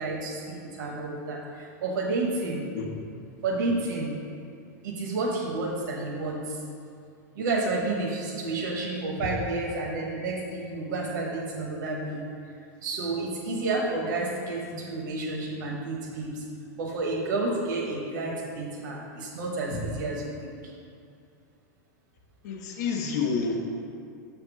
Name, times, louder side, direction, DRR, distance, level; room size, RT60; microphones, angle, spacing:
voice 1, 0.0-2.7 3.4-4.2 4.8-6.6 7.3-12.3 12.8-16.4 16.8-20.7, right 2 dB, 75° right, -2 dB, 1.0 m, -30 dB
voice 2, 22.4-23.6, left 5 dB, 60° left, 2 dB, 0.8 m, -29 dB
6.6 x 3.6 x 4.6 m, 2.4 s
supercardioid pair, 165°, 10 cm